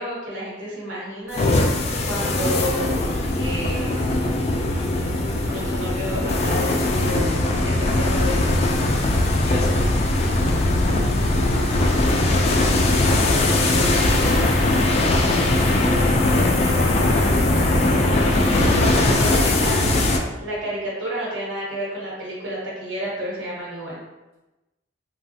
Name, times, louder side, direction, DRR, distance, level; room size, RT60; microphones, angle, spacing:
voice 1, 0.0-4.0 5.4-8.7 18.4-24.0, equal, 85° right, -5 dB, 1.2 m, -31 dB
sound 1, 1.3-20.2, left 2 dB, 35° left, 0.3 m, -20 dB
voice 2, 11.6-12.9 13.3-14.7 16.7-17.7, right 1 dB, 35° right, -6 dB, 0.5 m, -38 dB
3.1 x 2.3 x 2.7 m, 1.0 s
head